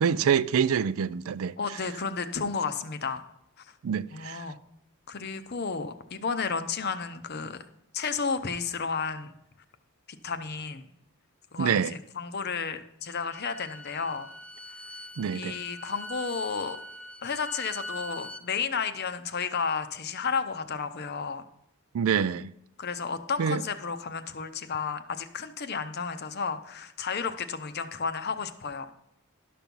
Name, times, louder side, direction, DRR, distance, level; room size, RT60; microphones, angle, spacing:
voice 1, 0.0-1.5 3.8-4.4 11.6-11.9 15.2-15.6 21.9-22.5 23.4-23.6, right 7 dB, 70° right, 0.4 m, -26 dB
voice 2, 1.6-3.2 3.6-3.7 4.1-4.6 5.1-7.6 7.9-9.3 10.1-10.9 11.5-14.3 14.8-14.9 15.3-16.8 17.2-21.4 22.8-28.9, left 5 dB, 45° left, 0.7 m, -32 dB
Bowed string instrument, 13.1-18.4, left 1 dB, 5° left, 0.5 m, -42 dB
12.0 x 6.0 x 5.4 m
head